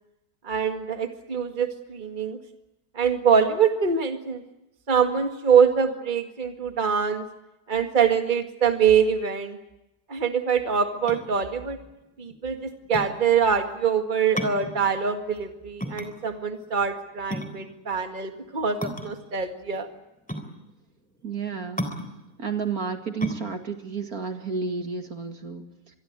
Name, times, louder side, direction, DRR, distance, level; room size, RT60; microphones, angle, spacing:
voice 1, 0.4-2.4 3.0-4.4 4.9-7.3 7.7-9.6 10.1-11.8 12.2-19.9, right 6 dB, 25° right, 6 dB, 2.1 m, -24 dB
sound 1, 10.9-25.3, equal, 5° left, 3.5 m, -36 dB
voice 2, 21.2-21.8 22.4-25.7, right 5 dB, 55° right, 6 dB, 2.6 m, -31 dB
26.5 x 21.5 x 8.2 m, 0.92 s
omnidirectional pair, 1.9 m